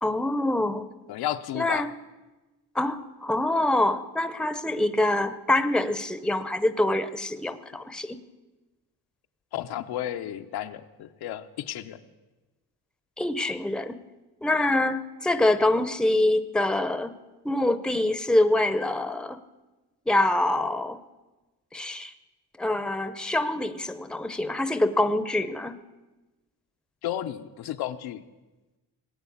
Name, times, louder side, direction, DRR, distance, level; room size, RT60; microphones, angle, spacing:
voice 1, 0.0-0.9 1.5-1.9 2.7-8.2 13.2-14.0 14.4-17.1 17.4-19.4 20.1-21.0 21.7-22.1 22.6-25.8, left 1 dB, ahead, 12 dB, 0.7 m, -25 dB
voice 2, 1.1-1.9 9.5-12.0 27.0-28.2, left 12 dB, 90° left, 7 dB, 1.0 m, -33 dB
18.5 x 8.9 x 8.5 m, 1.1 s
cardioid pair, 135°, 37 cm